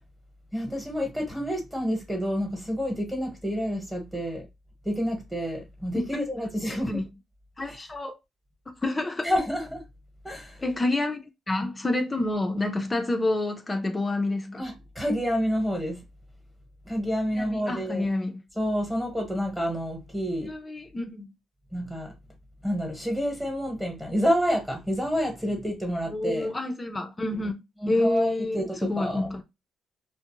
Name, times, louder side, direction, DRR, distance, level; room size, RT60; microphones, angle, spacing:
voice 1, 0.5-4.4 4.8-7.0 7.7-7.8 9.2-9.8 10.2-10.6 14.6-16.0 16.9-18.1 18.5-20.5 21.7-22.1 22.6-26.5 27.8-29.3, equal, 5° right, 1.0 m, -28 dB
voice 2, 6.7-7.1 7.6-8.2 8.8-9.3 10.6-14.7 17.3-18.4 20.4-21.3 26.1-29.4, left 2 dB, 25° left, 0.5 m, -28 dB
2.4 x 2.0 x 2.9 m
cardioid pair, 90°, 0 cm